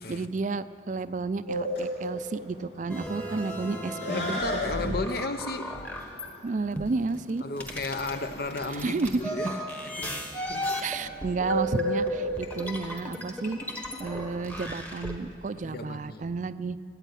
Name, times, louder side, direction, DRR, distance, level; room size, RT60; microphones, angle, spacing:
voice 1, 0.1-5.0 6.4-7.4 8.7-9.2 10.8-13.6 14.0-16.8, right 3 dB, 45° right, 13 dB, 0.4 m, -31 dB
Bird, 1.5-14.5, equal, 75° left, 2.6 m, -34 dB
sound 1, 2.9-6.3 6.8-15.1, equal, 10° left, 1.2 m, -36 dB
voice 2, 4.1-5.7 7.4-9.6 10.0-10.8 15.6-16.6, left 3 dB, 55° left, 9 dB, 0.8 m, -34 dB
14.5 x 9.1 x 9.3 m, 2.2 s
head